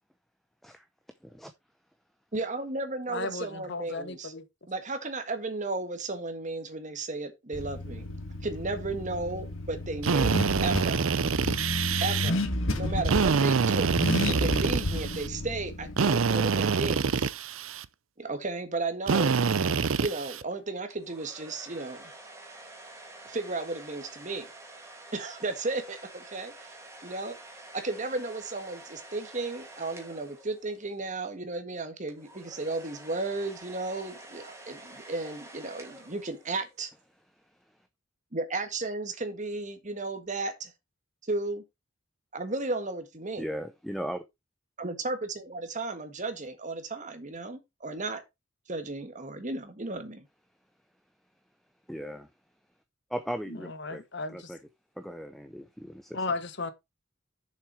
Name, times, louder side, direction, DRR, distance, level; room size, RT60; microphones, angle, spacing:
voice 1, 2.3-4.3 4.7-8.1 8.4-11.0 12.0-12.4 12.8-13.9 14.3-17.3 18.2-19.4 20.0-22.1 23.2-24.5 25.1-26.7 27.0-27.4 27.7-36.9 38.3-40.7 41.3-41.6 42.3-43.5 44.8-48.2 48.7-50.3, right 2 dB, 40° right, 1.6 m, -34 dB
voice 2, 3.1-4.4 53.5-54.5 56.1-56.7, left 3 dB, 60° left, 1.1 m, -35 dB
Car / Accelerating revving vroom, 7.5-16.7, left 1 dB, 85° left, 1.9 m, -32 dB
Drill, 10.0-12.3 13.0-15.3 16.0-17.9 19.1-20.4, right 5 dB, 85° right, 0.6 m, -26 dB
sound 1, 20.9-31.0 32.1-36.8, right 2 dB, 15° right, 2.7 m, -48 dB
voice 3, 43.4-44.2 51.9-52.3 53.1-54.0 54.3-54.6 55.0-56.2, equal, ahead, 0.7 m, -37 dB
7.0 x 6.1 x 4.8 m
head